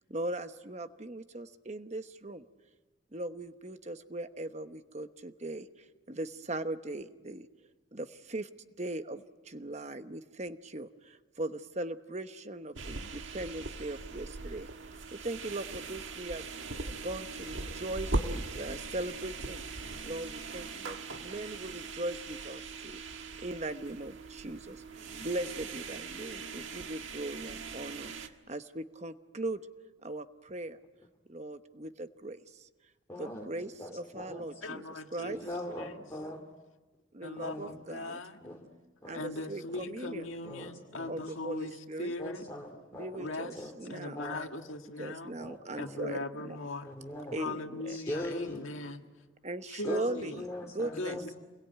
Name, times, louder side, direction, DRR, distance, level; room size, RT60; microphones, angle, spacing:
voice 1, 0.0-2.4 3.1-7.5 7.9-8.5 8.8-14.7 15.1-16.4 17.0-23.0 23.4-29.6 30.0-30.8 31.3-32.7 33.2-35.4 37.1-38.2 39.1-40.3 41.1-42.1 42.9-44.2 45.0-46.6 47.3-48.0 49.4-51.2, right 2 dB, 35° right, 9 dB, 1.0 m, -39 dB
sound 1, 12.8-28.3, right 3 dB, 75° right, 1.7 m, -40 dB
voice 2, 33.1-34.4 35.2-36.4 37.4-37.8 38.4-38.6 39.0-39.2 40.4-40.7 41.0-41.2 42.2-43.3 43.6-43.7 44.1-44.4 45.4-46.1 46.8-47.4 47.9-48.7 49.8-50.0 50.3-51.3, left 1 dB, 15° left, -1 dB, 2.4 m, -41 dB
voice 3, 34.6-35.5 35.8-36.0 37.2-38.4 39.1-42.4 43.2-43.5 43.9-45.4 45.8-46.9 47.4-49.0 49.7-50.4 51.0-51.3, left 2 dB, 85° left, 5 dB, 1.9 m, -39 dB
28.0 x 22.0 x 9.2 m, 1.3 s
head